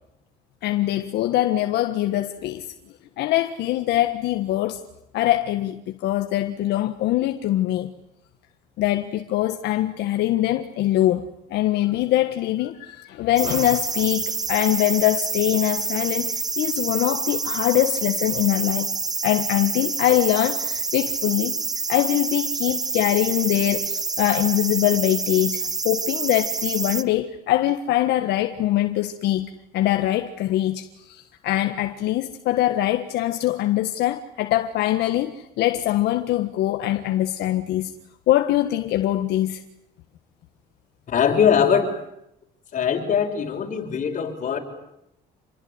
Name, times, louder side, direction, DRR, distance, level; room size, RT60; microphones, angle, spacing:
voice 1, 0.6-2.6 3.2-4.8 5.1-7.9 8.8-18.9 19.2-21.6 21.9-37.9 38.3-39.6, left 14 dB, 80° left, 1.6 m, -23 dB
sound 1, 13.4-27.0, right 4 dB, 20° right, 1.2 m, -27 dB
voice 2, 41.1-42.0 42.7-44.6, left 7 dB, 50° left, 6.2 m, -21 dB
28.0 x 22.0 x 9.7 m
cardioid pair, 110°, 17 cm